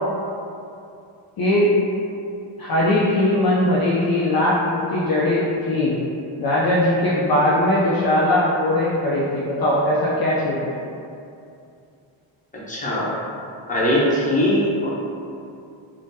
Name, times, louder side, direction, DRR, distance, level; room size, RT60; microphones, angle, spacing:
voice 1, 1.4-1.7 2.6-6.0 6.4-10.7, left 1 dB, 50° left, -6 dB, 0.5 m, -20 dB
voice 2, 12.5-13.1 13.7-14.9, equal, 15° left, -7 dB, 0.9 m, -21 dB
3.4 x 2.2 x 2.7 m, 2.5 s
cardioid pair, 55°, 49 cm